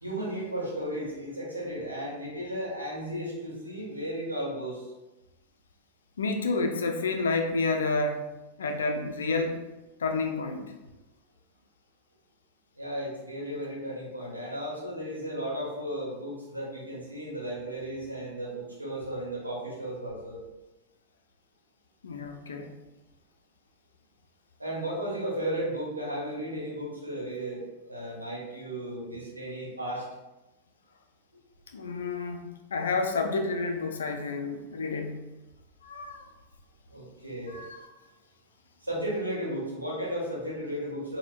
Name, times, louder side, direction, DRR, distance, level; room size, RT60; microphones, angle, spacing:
voice 1, 0.0-4.9 12.8-20.4 24.6-30.0 31.8-32.0 36.9-37.6 38.8-41.2, right 1 dB, 85° right, -5 dB, 0.9 m, -34 dB
voice 2, 6.2-8.3 8.6-9.6 10.0-10.6 22.0-22.8 31.7-32.4 32.7-35.2 35.8-36.2 37.5-37.9, left 3 dB, 65° left, 5 dB, 0.3 m, -29 dB
4.2 x 2.1 x 2.3 m, 1.0 s
figure-of-eight pair, 90°, 0 cm